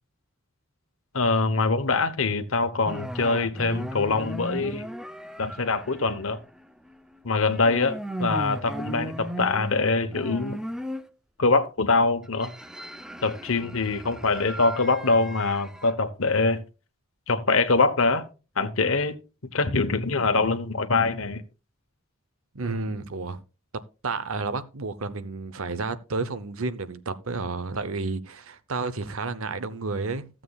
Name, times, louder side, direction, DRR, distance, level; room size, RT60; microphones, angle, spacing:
voice 1, 1.1-4.9 5.4-6.4 7.2-10.6 11.4-12.5 13.2-16.6 17.3-18.2 18.6-19.2 19.5-21.4, left 3 dB, 70° left, 1.1 m, -24 dB
sound 1, 2.8-7.2 7.5-11.1 12.2-15.9, equal, 5° right, 0.6 m, -36 dB
voice 2, 22.5-23.4 24.0-30.4, right 3 dB, 80° right, 0.9 m, -31 dB
14.5 x 7.6 x 2.4 m
head